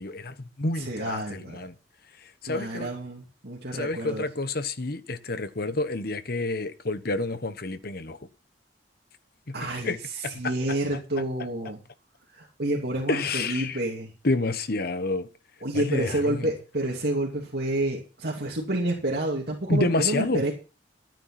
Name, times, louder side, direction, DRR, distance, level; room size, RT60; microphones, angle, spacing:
voice 1, 0.0-1.7 2.4-2.9 3.7-8.2 9.5-9.6 9.8-10.0 10.2-10.5 13.1-13.8 14.2-15.3 15.7-16.5 19.7-20.4, left 2 dB, 60° left, 1.2 m, -29 dB
voice 2, 0.8-1.7 2.5-4.2 9.5-11.8 12.4-14.1 15.6-20.5, right 1 dB, 60° right, 2.7 m, -29 dB
13.0 x 9.2 x 5.9 m
head